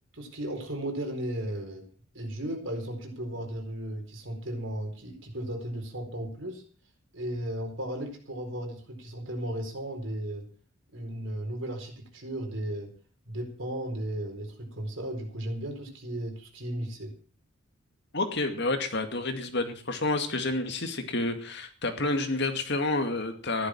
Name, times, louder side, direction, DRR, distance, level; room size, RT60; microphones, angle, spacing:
voice 1, 0.1-1.9 2.1-6.6 7.1-10.5 10.9-12.9 13.3-17.1, right 1 dB, 60° right, 3 dB, 4.5 m, -35 dB
voice 2, 18.1-23.7, left 2 dB, 55° left, 7 dB, 2.2 m, -29 dB
14.5 x 11.5 x 6.2 m, 0.41 s
head